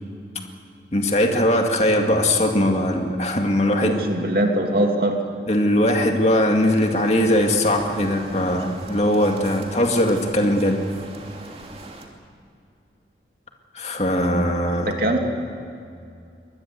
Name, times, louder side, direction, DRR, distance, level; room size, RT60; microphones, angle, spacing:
voice 1, 0.9-4.0 5.5-10.8 13.7-14.9, left 1 dB, 40° left, 3 dB, 2.2 m, -20 dB
voice 2, 3.8-5.2 14.8-15.2, right 1 dB, 55° right, 2 dB, 3.0 m, -22 dB
sound 1, 6.6-12.1, right 2 dB, 35° right, 2.6 m, -40 dB
24.0 x 19.5 x 8.1 m, 2.5 s
head